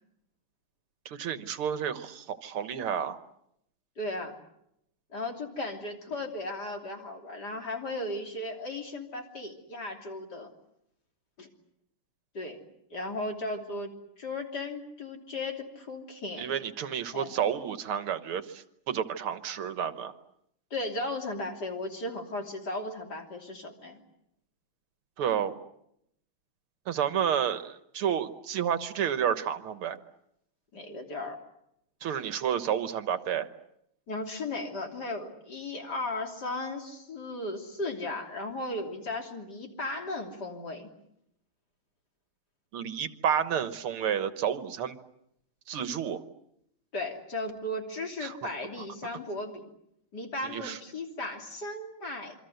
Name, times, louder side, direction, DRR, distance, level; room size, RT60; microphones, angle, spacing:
voice 1, 1.1-3.2 16.4-20.1 25.2-25.6 26.9-30.0 32.0-33.5 42.7-45.0 45.7-46.2 48.2-48.3 50.4-50.8, right 8 dB, 75° right, 11 dB, 2.1 m, -30 dB
voice 2, 4.0-4.4 5.1-10.5 11.4-11.5 12.3-12.6 12.9-16.4 17.1-17.3 20.7-24.0 30.7-31.4 34.1-40.9 46.9-49.7 50.1-52.3, left 2 dB, 45° left, 3 dB, 3.7 m, -36 dB
27.5 x 24.0 x 8.0 m, 0.77 s
omnidirectional pair, 2.4 m